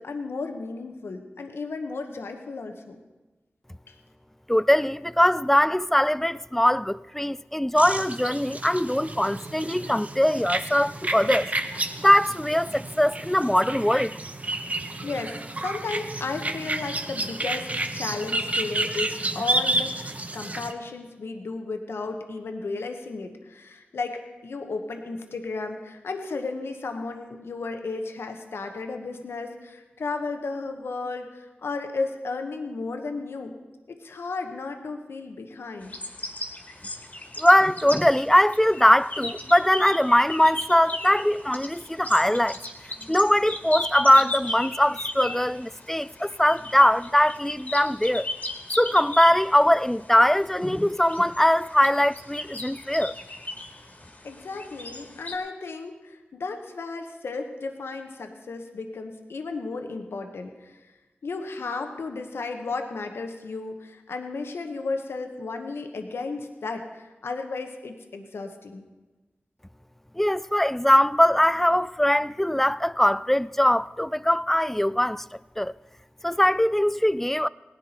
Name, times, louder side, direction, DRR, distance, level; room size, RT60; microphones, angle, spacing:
voice 1, 0.0-3.0 3.9-4.0 15.0-19.9 20.3-33.5 33.9-35.9 54.2-60.9 61.2-68.9, left 3 dB, 85° left, 1.1 m, -34 dB
voice 2, 4.5-11.5 12.0-14.2 37.4-42.6 43.0-48.3 48.8-53.2 70.2-75.2 75.6-75.7 76.2-77.5, left 1 dB, 5° left, 0.3 m, -21 dB
sound 1, 7.8-20.7, right 2 dB, 35° right, 0.9 m, -31 dB
sound 2, 35.8-55.4, left 1 dB, 40° left, 1.8 m, -37 dB
17.5 x 10.5 x 4.3 m
cardioid pair, 45°, 4 cm